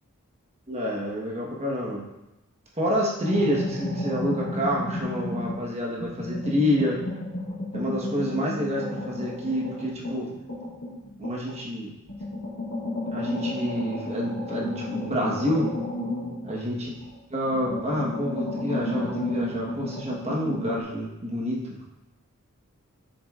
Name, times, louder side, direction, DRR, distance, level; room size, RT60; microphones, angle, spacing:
voice 1, 0.7-2.0 2.8-7.0 7.7-10.3 11.2-12.0 13.1-15.7 16.4-16.9 17.3-21.9, equal, 30° right, -3 dB, 1.3 m, -28 dB
sound 1, 3.2-5.7 6.0-11.6 12.1-17.1 17.4-20.8, left 1 dB, 85° left, 1.9 m, -32 dB
7.2 x 7.0 x 2.5 m, 0.95 s
head